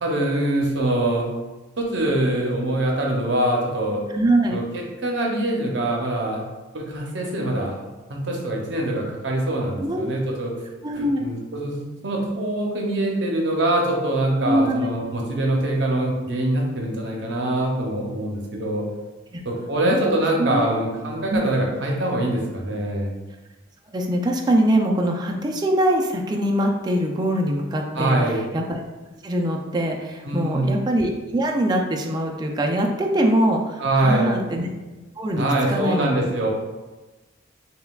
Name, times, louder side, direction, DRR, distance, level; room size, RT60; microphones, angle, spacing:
voice 1, 0.0-1.3 1.8-4.0 4.5-6.4 6.7-7.7 8.1-10.5 11.0-18.8 19.4-23.1 27.9-28.4 30.2-30.8 33.8-34.4 35.4-36.5, right 1 dB, 60° right, 0 dB, 0.7 m, -24 dB
voice 2, 4.1-4.6 9.8-10.3 10.8-11.3 14.4-14.8 19.3-19.4 19.8-20.0 20.4-20.7 21.3-21.4 23.9-28.2 28.5-28.8 29.2-34.7 35.2-36.2, right 1 dB, 20° right, 1 dB, 0.4 m, -23 dB
5.4 x 2.3 x 2.3 m, 1.2 s
head